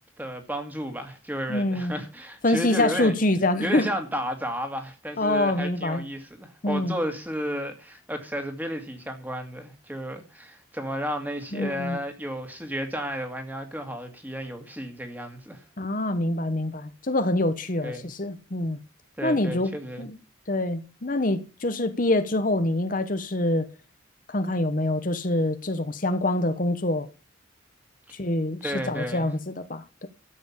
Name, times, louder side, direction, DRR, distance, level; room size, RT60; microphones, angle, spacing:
voice 1, 0.2-3.1 3.6-15.6 17.8-18.1 19.2-20.0 28.6-29.3, equal, 10° right, 2.2 m, -32 dB
voice 2, 1.5-1.9 2.4-3.9 5.2-6.1 6.6-7.0 11.5-12.0 15.8-18.8 19.2-19.7 20.0-20.2 20.5-23.7 24.3-27.1 28.1-30.1, left 1 dB, 40° left, 1.0 m, -25 dB
13.0 x 7.9 x 7.2 m
head